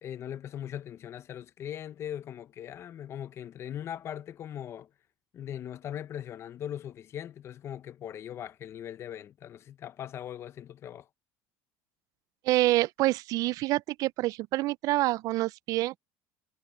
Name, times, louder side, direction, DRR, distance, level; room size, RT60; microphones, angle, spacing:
voice 1, 0.0-4.9 5.3-11.1, left 10 dB, 35° left, 0.8 m, -40 dB
voice 2, 12.4-16.0, right 17 dB, 50° right, 0.4 m, -27 dB
cardioid pair, 140°, 8 cm